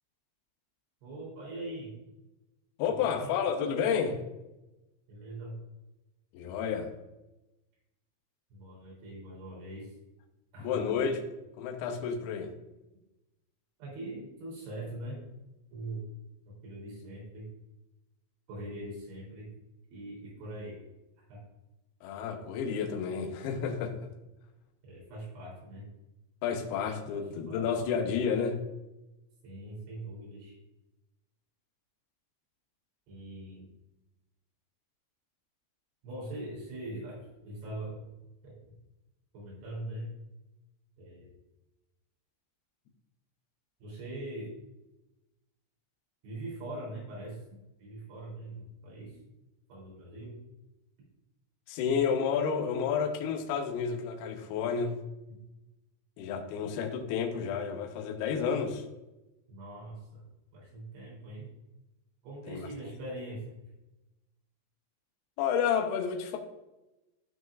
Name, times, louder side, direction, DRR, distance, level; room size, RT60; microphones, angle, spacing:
voice 1, 1.0-1.9 2.9-3.4 5.1-5.6 8.5-9.9 10.5-10.8 13.8-15.2 15.7-16.1 16.5-17.5 18.5-19.5 19.9-20.8 21.3-21.4 24.8-25.9 27.1-27.7 29.4-30.6 33.1-33.7 36.0-38.0 38.4-38.8 39.3-40.1 41.0-41.3 43.8-44.5 46.2-47.4 47.8-49.2 49.7-50.4 59.5-60.2 60.5-61.5 62.2-63.5, right 1 dB, 65° right, 5.8 m, -42 dB
voice 2, 2.8-4.2 6.3-6.9 10.6-11.2 11.6-12.5 22.0-24.0 26.4-28.6 51.7-55.0 56.2-58.8 62.5-62.7 65.4-66.4, left 6 dB, 85° left, 2.2 m, -30 dB
15.0 x 6.3 x 2.5 m
omnidirectional pair, 6.0 m